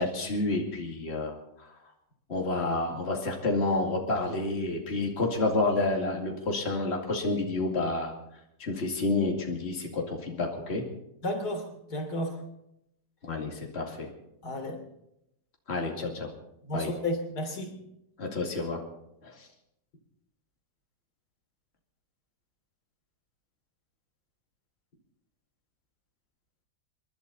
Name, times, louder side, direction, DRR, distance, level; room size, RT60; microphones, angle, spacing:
voice 1, 0.0-1.7 2.3-8.1 8.6-10.8 13.2-14.1 15.7-16.3 16.7-16.9 18.2-18.8 19.2-19.3, left 2 dB, 35° left, 1 dB, 2.6 m, -29 dB
voice 2, 11.2-12.4 14.4-14.8 16.6-17.8, left 1 dB, 65° left, 2 dB, 3.6 m, -32 dB
28.5 x 11.5 x 4.1 m, 0.83 s
omnidirectional pair, 1.8 m